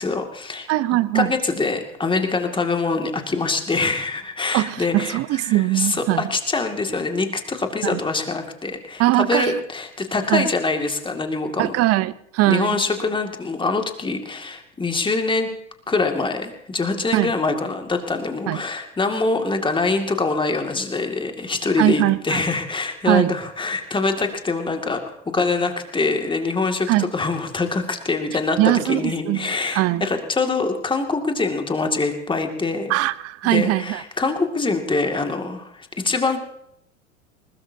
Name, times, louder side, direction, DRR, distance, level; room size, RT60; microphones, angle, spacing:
voice 1, 0.0-0.7 1.1-11.8 12.5-15.5 15.9-33.0 33.4-36.4, left 3 dB, 15° left, 5 dB, 2.3 m, -24 dB
voice 2, 0.7-1.3 4.5-6.3 7.8-8.0 9.0-9.6 10.3-10.5 11.6-12.8 17.1-17.3 18.5-18.6 21.8-22.4 23.1-23.3 26.9-27.1 28.6-30.1 32.9-34.0, right 17 dB, 40° right, 18 dB, 0.8 m, -21 dB
20.5 x 20.5 x 2.8 m, 0.77 s
hypercardioid pair, 90°, 38 cm